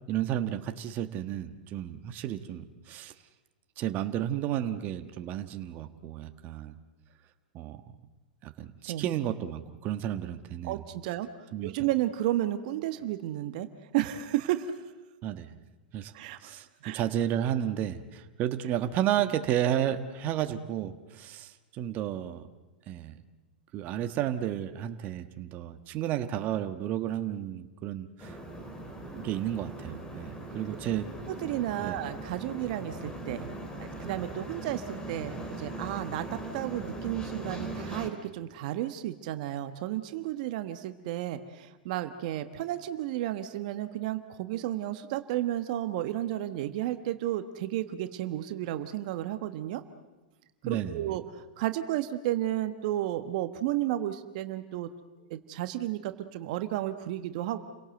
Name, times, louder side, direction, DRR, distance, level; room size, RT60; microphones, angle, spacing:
voice 1, 0.1-3.1 3.8-6.8 7.5-7.8 8.4-10.8 11.5-11.7 15.2-15.6 15.9-16.1 16.4-22.5 22.9-23.2 23.7-28.4 29.0-31.1 31.8-32.0 50.6-51.1, right 11 dB, 40° right, 8 dB, 1.4 m, -32 dB
voice 2, 10.6-11.3 11.6-13.7 13.9-14.9 16.1-16.5 16.8-17.0 31.3-33.5 33.8-49.8 50.6-54.9 55.3-57.6, right 13 dB, 55° right, 9 dB, 1.4 m, -32 dB
sound 1, 28.2-38.1, right 2 dB, 15° left, 3.8 m, -40 dB
29.5 x 18.0 x 7.9 m, 1.1 s
hypercardioid pair, 110°, 5 cm